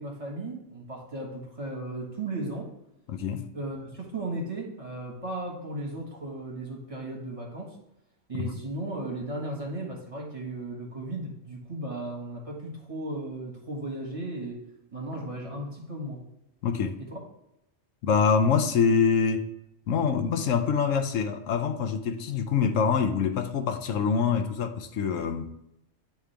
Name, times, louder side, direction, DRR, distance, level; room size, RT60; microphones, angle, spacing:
voice 1, 0.0-2.7 3.5-7.8 8.3-14.6 14.9-16.2 17.1-17.2, right 2 dB, 25° right, 1.5 m, -35 dB
voice 2, 3.1-3.4 8.3-8.6 16.6-17.0 18.0-19.5 19.9-25.5, left 6 dB, 80° left, 1.0 m, -25 dB
9.9 x 3.4 x 3.3 m
omnidirectional pair, 1.3 m